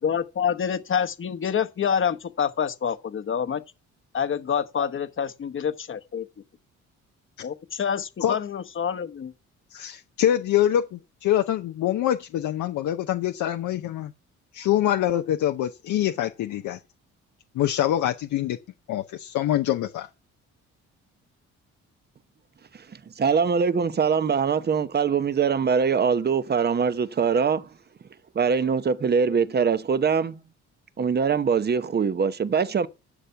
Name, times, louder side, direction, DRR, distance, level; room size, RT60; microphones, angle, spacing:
voice 1, 0.0-3.6 4.1-6.2 7.4-9.3, left 7 dB, 40° left, 1.1 m, -27 dB
voice 2, 9.7-14.1 14.5-16.8 17.5-18.6 18.9-20.1, left 12 dB, 75° left, 0.7 m, -25 dB
voice 3, 22.7-27.7 28.3-30.4 31.0-32.9, right 6 dB, 35° right, 0.9 m, -23 dB
12.0 x 6.7 x 5.7 m
cardioid pair, 90°, 30 cm